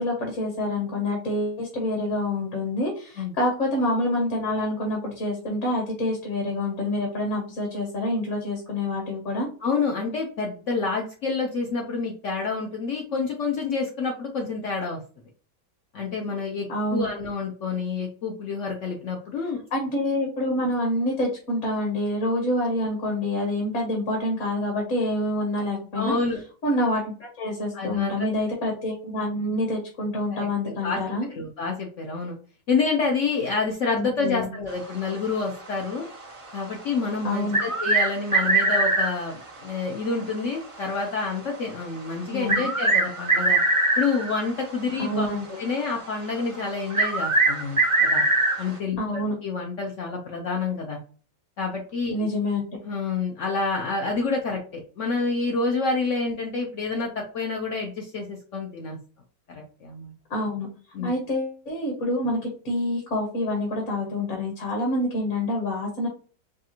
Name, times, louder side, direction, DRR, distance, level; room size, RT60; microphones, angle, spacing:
voice 1, 0.0-9.5 16.7-17.0 19.7-26.1 26.6-31.3 33.9-34.5 37.2-37.6 42.3-42.6 45.0-45.5 49.0-49.4 52.1-52.7 60.3-60.7 61.0-66.1, left 1 dB, 50° left, 0 dB, 1.2 m, -27 dB
voice 2, 9.6-15.0 15.9-16.7 16.9-19.6 26.0-26.4 27.7-28.3 30.3-31.0 31.3-32.4 32.7-36.1 36.5-43.6 44.0-45.3 45.6-48.2 48.6-51.0 51.6-52.3 52.9-59.0 59.5-60.1 60.9-61.1, left 4 dB, 65° left, 1 dB, 0.7 m, -28 dB
sound 1, 37.5-39.1 40.9-41.0 42.5-44.4 46.9-48.6, right 2 dB, 45° right, 0.4 m, -21 dB
4.8 x 2.4 x 2.9 m, 0.40 s
omnidirectional pair, 1.9 m